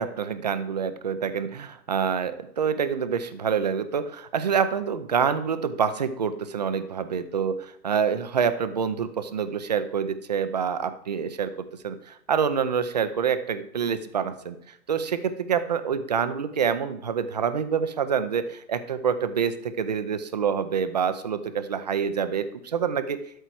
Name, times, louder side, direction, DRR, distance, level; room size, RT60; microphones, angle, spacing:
voice 1, 0.0-7.6 7.8-11.5 11.8-14.6 14.9-23.2, right 7 dB, 30° right, 11 dB, 0.4 m, -26 dB
12.5 x 4.4 x 7.6 m, 0.70 s
hypercardioid pair, 150°, 49 cm